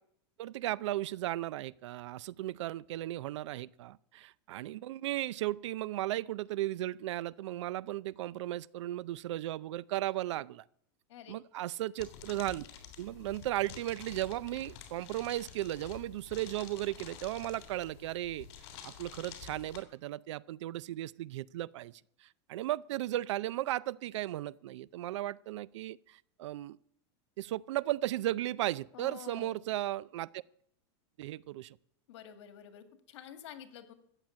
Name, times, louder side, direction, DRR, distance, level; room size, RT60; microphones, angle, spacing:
voice 1, 0.4-10.6 11.3-12.7 13.0-18.5 18.8-26.8 27.4-30.4 31.2-31.8, right 15 dB, 80° right, 0.5 m, -36 dB
sound 1, 12.0-19.8, left 9 dB, 60° left, 3.1 m, -50 dB
voice 2, 28.9-29.5 32.1-33.9, left 9 dB, 75° left, 1.9 m, -49 dB
13.5 x 7.9 x 8.3 m
supercardioid pair, 150°, 15 cm